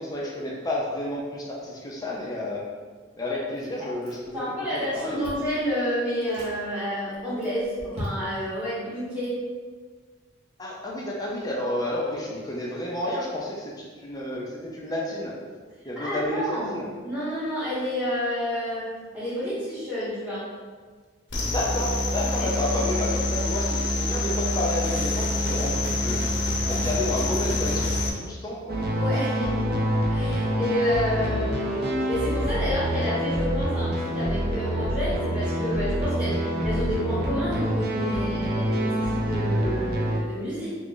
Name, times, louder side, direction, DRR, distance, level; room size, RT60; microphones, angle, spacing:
voice 1, 0.0-2.6 3.2-4.4 4.7-5.3 10.6-15.4 15.8-16.9 21.4-26.4 26.6-28.8, left 1 dB, 20° left, -3 dB, 0.5 m, -31 dB
Chewing mastication, 3.5-4.5 4.7-5.6 6.1-6.5 7.1-8.5, equal, 35° right, 0.8 m, -39 dB
voice 2, 4.3-9.4 16.0-20.5 28.9-40.7, equal, 5° right, -10 dB, 1.1 m, -29 dB
sound 1, 21.3-28.1, left 1 dB, 70° left, 0.6 m, -26 dB
sound 2, 28.7-40.2, equal, 55° right, 0.5 m, -26 dB
3.0 x 2.3 x 3.7 m, 1.5 s
head